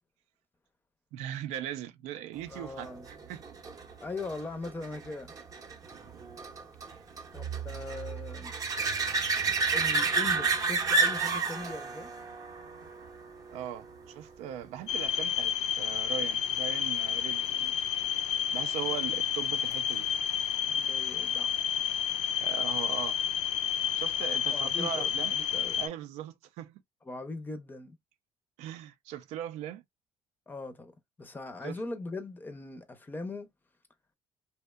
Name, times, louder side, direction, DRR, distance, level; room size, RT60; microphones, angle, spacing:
voice 1, 1.1-3.4 6.9-7.1 13.5-17.7 18.5-20.1 22.4-23.2 24.0-25.3 25.8-26.8 28.6-29.8 31.6-31.8, right 11 dB, 90° right, 0.4 m, -39 dB
voice 2, 2.5-3.1 4.0-5.3 7.3-8.5 9.7-12.1 17.5-17.7 18.9-19.0 20.7-21.8 24.4-25.8 27.0-28.0 30.5-30.9 31.2-33.5, left 3 dB, 15° left, 0.5 m, -40 dB
sound 1, 2.8-14.1 19.7-19.8, right 4 dB, 35° right, 0.6 m, -31 dB
sound 2, 14.9-25.9, left 9 dB, 80° left, 0.4 m, -30 dB
2.7 x 2.1 x 2.2 m
cardioid pair, 115°, 11 cm